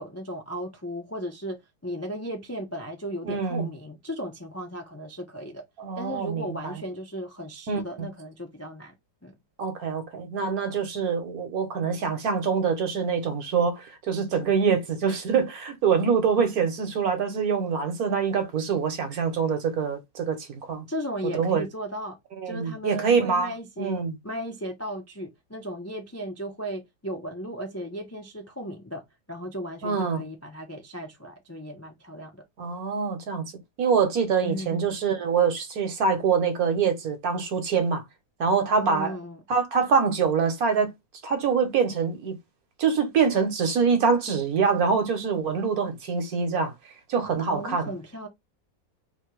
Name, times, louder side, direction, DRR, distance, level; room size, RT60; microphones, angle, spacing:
voice 1, 0.0-5.6 6.0-8.9 9.2-9.3 20.9-22.2 22.4-29.0 29.3-32.4 34.4-34.9 38.8-39.4 47.5-48.3, equal, 20° left, 0.3 m, -36 dB
voice 2, 3.2-3.7 5.8-6.7 7.7-8.1 9.6-20.8 21.3-21.7 22.4-23.5 23.8-24.2 29.8-30.2 32.6-33.5 33.8-38.0 38.4-39.2 39.5-40.9 41.2-42.4 42.8-46.7 47.1-47.9, right 6 dB, 65° right, 1.5 m, -25 dB
3.6 x 2.8 x 4.6 m
omnidirectional pair, 1.8 m